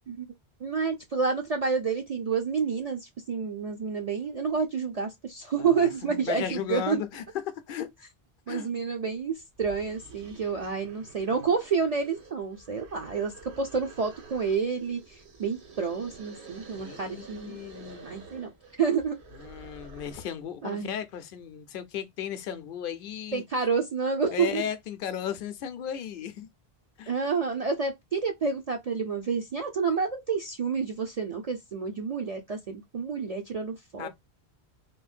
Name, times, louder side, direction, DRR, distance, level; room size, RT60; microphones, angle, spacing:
voice 1, 0.6-3.0 3.3-7.0 8.5-15.0 15.4-17.6 18.0-18.5 18.8-19.2 20.6-20.9 23.3-24.6 27.1-34.1, right 5 dB, 50° right, 0.5 m, -29 dB
voice 2, 5.6-7.9 8.5-8.7 16.7-18.1 19.3-23.4 24.3-26.5 27.0-27.1 34.0-34.1, left 9 dB, 60° left, 0.7 m, -35 dB
sound 1, 9.2-9.3 9.6-20.4, right 3 dB, 85° right, 1.3 m, -49 dB
3.7 x 2.1 x 2.4 m
omnidirectional pair, 1.1 m